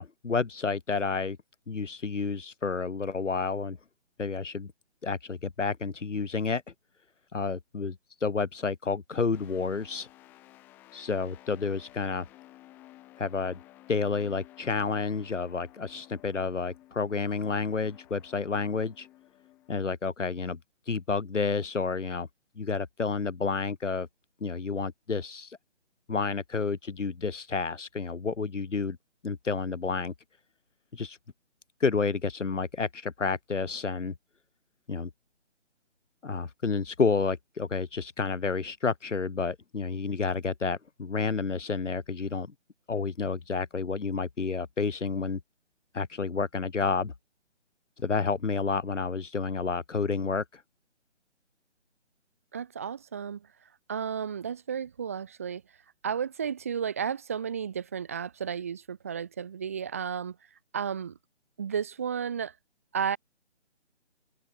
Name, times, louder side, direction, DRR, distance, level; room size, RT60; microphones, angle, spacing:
voice 1, 0.0-1.4 1.7-3.8 4.2-4.7 5.0-6.6 7.3-7.9 8.2-10.1 10.9-12.3 13.2-13.6 13.9-19.1 19.7-20.6 20.9-22.3 22.6-24.1 24.4-25.6 26.1-29.0 29.2-30.1 30.9-31.2 31.8-34.1 34.9-35.1 36.2-42.5 42.9-45.4 45.9-47.1 48.0-50.6, left 4 dB, 80° left, 2.2 m, -30 dB
sound 1, 9.3-19.9, left 16 dB, 5° left, 2.1 m, -54 dB
voice 2, 52.5-53.5 53.9-55.6 56.0-60.4 60.7-61.2 61.6-62.5 62.9-63.2, right 7 dB, 10° right, 1.3 m, -33 dB
open air
hypercardioid pair, 175°, 36 cm